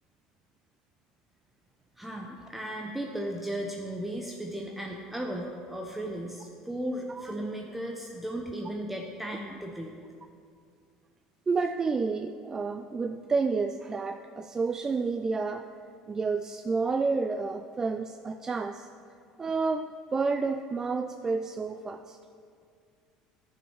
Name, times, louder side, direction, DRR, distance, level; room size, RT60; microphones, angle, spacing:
voice 1, 2.0-10.0, right 1 dB, 5° right, 0 dB, 0.7 m, -36 dB
voice 2, 11.5-15.7 16.1-18.9 19.4-22.2, right 4 dB, 25° right, 7 dB, 0.3 m, -30 dB
11.0 x 5.4 x 4.7 m, 2.3 s
supercardioid pair, 100°, 2 cm